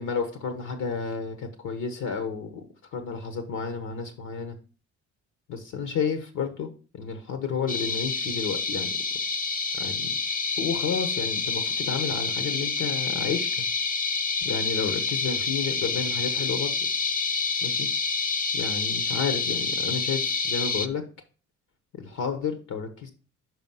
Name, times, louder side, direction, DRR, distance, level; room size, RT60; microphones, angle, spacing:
voice 1, 0.0-4.6 5.5-8.9 9.7-10.1 10.6-13.6 14.4-16.7 17.6-17.9 18.5-21.1 21.9-23.1, left 6 dB, 75° left, 8 dB, 1.1 m, -31 dB
sound 1, 7.7-20.9, left 4 dB, 30° left, 0.7 m, -28 dB
6.1 x 5.2 x 5.5 m, 0.38 s
cardioid pair, 90°, 30 cm